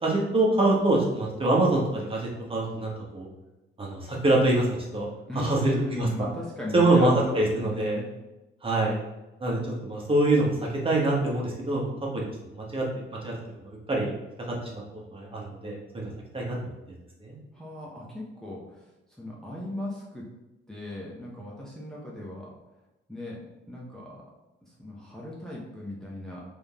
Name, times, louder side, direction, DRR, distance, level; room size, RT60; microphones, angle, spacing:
voice 1, 0.0-3.3 3.8-4.7 4.9-5.1 5.3-6.1 6.7-8.0 8.6-8.9 9.4-10.5 10.8-12.3 12.5-12.8 13.1-13.3 13.6-14.2 14.5-14.8 15.1-16.1 16.3-16.6 17.2-17.4, right 2 dB, 25° right, -3 dB, 1.4 m, -25 dB
voice 2, 5.3-8.1 17.5-18.8 19.2-20.3 20.7-22.5 23.1-23.4 23.7-24.2 24.7-26.4, left 1 dB, 5° left, -5 dB, 1.0 m, -37 dB
3.8 x 3.6 x 3.6 m, 0.99 s
cardioid pair, 90°, 20 cm